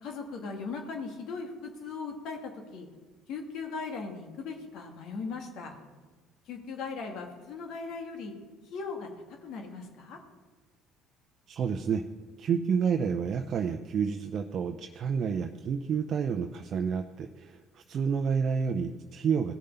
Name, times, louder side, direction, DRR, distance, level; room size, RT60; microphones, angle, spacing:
voice 1, 0.0-2.9 3.3-5.8 6.5-8.3 8.7-10.2, left 4 dB, 65° left, 3 dB, 2.0 m, -38 dB
voice 2, 11.5-12.0 12.4-19.6, right 6 dB, 50° right, 5 dB, 0.6 m, -29 dB
17.0 x 6.7 x 5.5 m, 1.3 s
hypercardioid pair, 70°, 0 cm